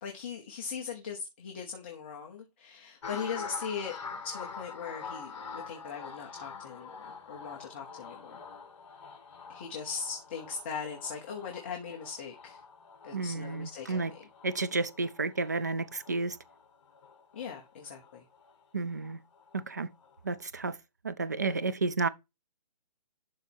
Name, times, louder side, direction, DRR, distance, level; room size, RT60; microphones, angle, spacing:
voice 1, 0.0-4.0 4.2-8.4 9.5-12.6 13.0-14.3 17.3-18.2, left 6 dB, 15° left, 0.8 m, -39 dB
sound 1, 3.0-19.6 20.0-20.4, left 5 dB, 45° left, 2.0 m, -46 dB
voice 2, 13.1-14.1 14.4-16.4 18.7-19.2 19.5-19.9 20.2-20.7 21.0-22.1, right 3 dB, 25° right, 0.3 m, -31 dB
11.5 x 4.0 x 4.4 m
hypercardioid pair, 175°, 21 cm